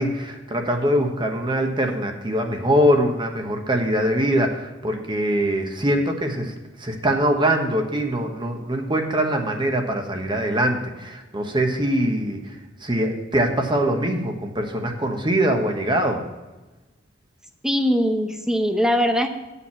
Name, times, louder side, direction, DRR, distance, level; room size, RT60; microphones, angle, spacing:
voice 1, 0.0-6.5 6.8-12.6 12.8-16.2, equal, 25° right, 4 dB, 1.2 m, -23 dB
voice 2, 17.6-19.3, equal, 5° right, 6 dB, 0.8 m, -21 dB
9.5 x 7.1 x 5.8 m, 1.1 s
head